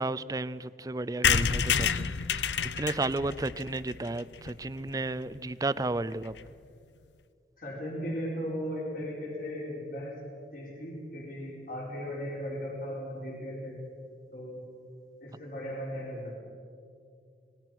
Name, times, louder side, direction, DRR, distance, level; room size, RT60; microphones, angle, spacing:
voice 1, 0.0-2.1 2.8-6.3, right 2 dB, 20° right, 16 dB, 0.4 m, -32 dB
sound 1, 1.2-4.9 5.4-5.5 5.6-5.7 6.0-6.1 6.3-6.5, left 7 dB, 90° left, 0.7 m, -29 dB
voice 2, 7.6-10.2 10.5-13.8 14.3-14.6 15.2-16.4, equal, 50° left, -2 dB, 4.3 m, -37 dB
26.0 x 20.0 x 6.1 m, 2.4 s
head